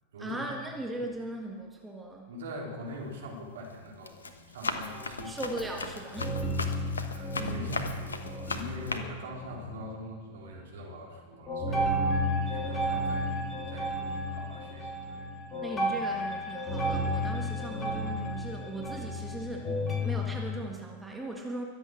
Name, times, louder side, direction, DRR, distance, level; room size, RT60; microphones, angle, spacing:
voice 1, 0.2-2.3 5.2-6.4 15.6-21.6, right 1 dB, 5° right, 0 dB, 1.8 m, -38 dB
voice 2, 2.3-5.4 7.0-15.6, equal, 60° right, -2 dB, 3.9 m, -43 dB
Run, 2.9-3.2 3.7-9.0, left 4 dB, 75° left, 1.1 m, -37 dB
sound 1, 4.8-5.9 6.2-9.9 10.3-10.8 11.5-20.6, equal, 20° left, 3.5 m, -33 dB
22.5 x 8.0 x 6.2 m, 1.4 s
figure-of-eight pair, 90°, 0 cm